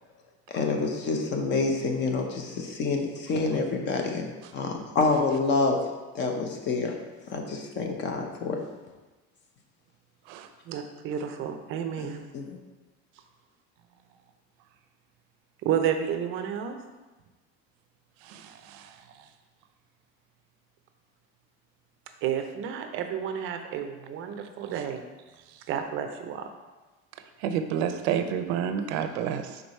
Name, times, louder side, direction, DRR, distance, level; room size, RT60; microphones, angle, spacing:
voice 1, 0.5-5.8 6.1-7.0 7.3-8.6 12.3-12.5, left 4 dB, 35° left, 3 dB, 0.7 m, -27 dB
voice 2, 10.7-12.3 15.6-16.8 22.2-25.0 25.7-26.5, right 8 dB, 40° right, 6 dB, 0.5 m, -31 dB
voice 3, 18.3-18.9 27.4-29.6, right 8 dB, 90° right, 8 dB, 0.6 m, -29 dB
4.6 x 4.0 x 5.3 m, 1.2 s
cardioid pair, 170°, 32 cm